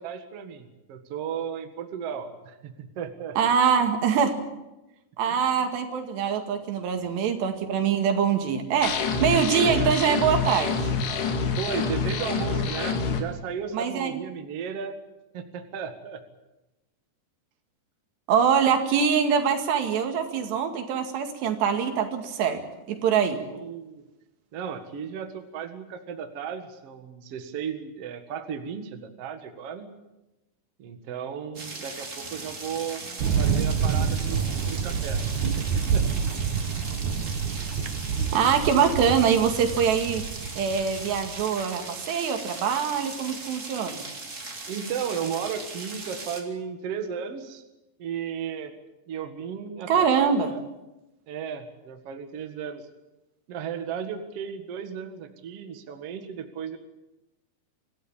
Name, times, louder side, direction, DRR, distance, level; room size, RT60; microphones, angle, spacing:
voice 1, 0.0-3.4 5.3-5.6 9.6-9.9 11.6-15.0 15.3-16.2 23.5-24.0 24.5-29.9 30.8-33.0 33.4-35.2 35.6-36.1 44.7-47.6 48.0-48.7 49.1-50.6 51.3-52.8 53.5-56.8, right 7 dB, 50° right, 6 dB, 2.2 m, -35 dB
voice 2, 3.4-4.4 5.2-10.9 13.7-14.1 18.3-22.6 22.9-23.4 38.3-40.2 40.6-44.1 49.9-50.5, right 7 dB, 85° right, 5 dB, 4.3 m, -24 dB
sound 1, 8.8-13.2, left 4 dB, 80° left, 4.3 m, -27 dB
sound 2, 31.5-46.4, right 3 dB, 25° right, 2.1 m, -39 dB
Thunder, 33.2-41.4, right 7 dB, 65° right, 2.0 m, -27 dB
25.5 x 15.5 x 8.8 m, 1.0 s
omnidirectional pair, 4.8 m